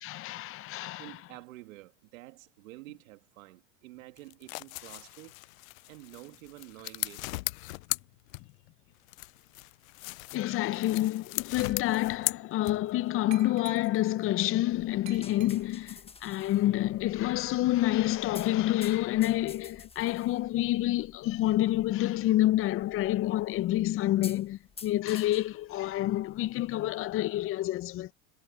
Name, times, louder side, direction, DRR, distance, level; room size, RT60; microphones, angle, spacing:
voice 1, 0.0-1.2 10.3-28.1, left 15 dB, 30° left, 0.6 m, -28 dB
voice 2, 1.0-5.4 5.9-7.3, right 19 dB, 75° right, 2.7 m, -49 dB
sound 1, 4.2-8.7 9.1-13.1, left 22 dB, 70° left, 0.5 m, -38 dB
Glass, 11.6-12.4 13.3-14.2 15.1-15.9, right 13 dB, 40° right, 2.2 m, -51 dB
sound 2, 14.7-27.1, left 5 dB, 15° left, 1.3 m, -51 dB
supercardioid pair, 120°, 42 cm